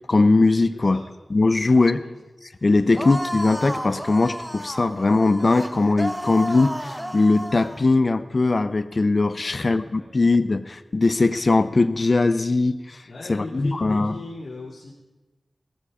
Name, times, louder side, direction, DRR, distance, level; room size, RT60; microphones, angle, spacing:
voice 1, 0.1-1.0 1.3-2.0 2.6-12.8 13.3-14.1, left 3 dB, 50° left, 13 dB, 0.7 m, -20 dB
voice 2, 1.6-2.1 2.9-3.0 9.3-10.1 13.1-14.9, left 2 dB, 75° left, -5 dB, 2.6 m, -38 dB
sound 1, 2.9-7.8, equal, 5° right, 0.7 m, -32 dB
18.5 x 13.5 x 5.0 m, 1.1 s
wide cardioid pair, 90°, 0 cm